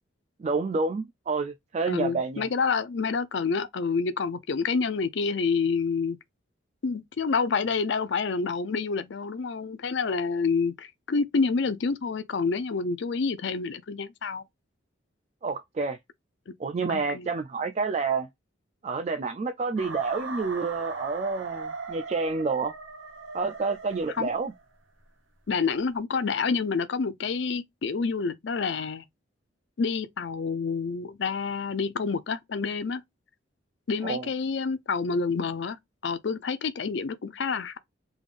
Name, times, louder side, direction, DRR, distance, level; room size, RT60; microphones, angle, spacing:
voice 1, 0.4-2.5 15.4-16.0 16.6-18.3 18.8-22.7 23.3-24.5 34.0-34.3, right 4 dB, 35° right, 0.3 m, -29 dB
voice 2, 1.9-6.2 6.8-14.4 16.5-16.6 16.9-17.3 24.2-24.3 25.5-29.0 29.8-33.0 33.9-35.8 36.0-37.8, left 5 dB, 60° left, 0.5 m, -28 dB
sound 1, 19.8-24.7, right 4 dB, 80° right, 1.0 m, -39 dB
3.6 x 3.4 x 2.4 m
head